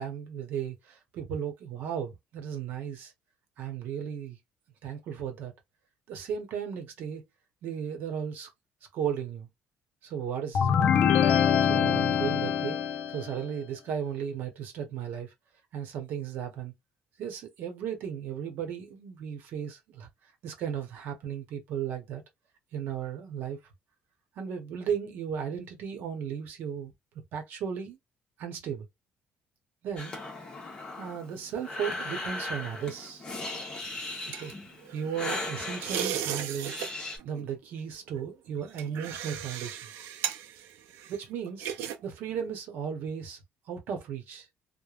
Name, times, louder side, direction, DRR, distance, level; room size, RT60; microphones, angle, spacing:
voice 1, 0.0-3.1 3.6-4.4 4.8-5.5 6.1-7.2 7.6-8.5 8.9-9.5 10.0-11.2 11.6-15.3 15.7-16.7 17.2-20.1 20.4-22.2 22.7-23.6 24.4-26.9 27.3-28.0 28.4-28.9 29.8-30.2 30.9-33.3 34.4-34.5 34.9-36.7 37.2-39.9 41.1-41.7 42.0-43.4 43.7-44.5, right 8 dB, 60° right, 0.8 m, -35 dB
sound 1, 10.6-13.4, left 8 dB, 45° left, 0.4 m, -24 dB
Breathing, 30.0-37.2, left 2 dB, 20° left, 0.9 m, -38 dB
sound 2, 33.8-35.4 35.8-36.9 37.2-37.5 38.1-42.0 42.3-42.5, right 10 dB, 85° right, 0.5 m, -36 dB
3.2 x 2.1 x 2.4 m
cardioid pair, 170°, 4 cm